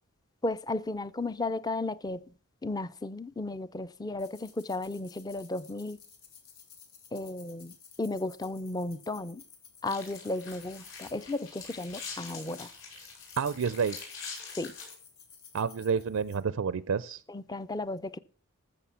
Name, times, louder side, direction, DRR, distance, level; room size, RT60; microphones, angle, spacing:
voice 1, 0.4-2.2 2.6-6.0 7.1-9.4 9.8-12.7 14.6-14.7 17.3-18.2, left 2 dB, 20° left, 0.4 m, -34 dB
sound 1, 4.2-16.4, left 6 dB, 85° left, 2.5 m, -55 dB
sound 2, 9.9-14.9, left 5 dB, 60° left, 5.9 m, -44 dB
voice 2, 13.4-14.0 15.5-17.2, right 6 dB, 75° right, 0.4 m, -29 dB
14.5 x 6.9 x 5.6 m
head